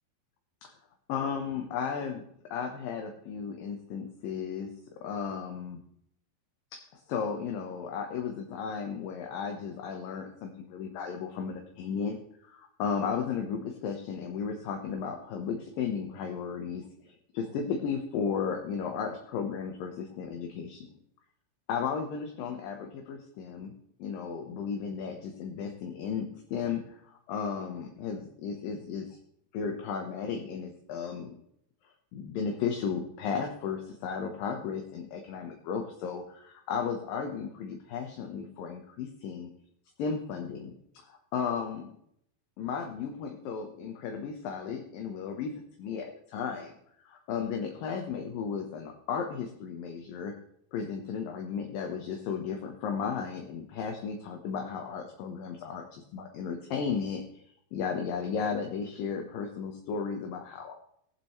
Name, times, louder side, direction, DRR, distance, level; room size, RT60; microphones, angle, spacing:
voice 1, 1.1-2.2 2.5-4.7 5.0-5.8 6.7-20.9 21.7-23.7 24.0-29.2 29.5-31.4 32.1-39.5 40.0-41.9 42.6-45.5 45.8-46.7 47.1-50.3 50.7-57.2 57.7-60.8, left 6 dB, 70° left, 4 dB, 2.6 m, -34 dB
21.5 x 7.6 x 3.2 m, 0.70 s
omnidirectional pair, 4.5 m